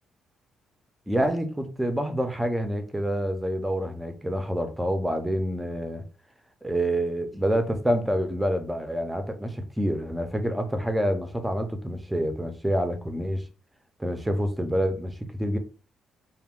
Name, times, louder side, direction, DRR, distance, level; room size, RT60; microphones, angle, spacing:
voice 1, 1.1-6.0 6.6-13.4 14.0-15.6, equal, 5° right, 0.6 m, -27 dB
2.2 x 2.1 x 3.6 m
cardioid pair, 90°, 0 cm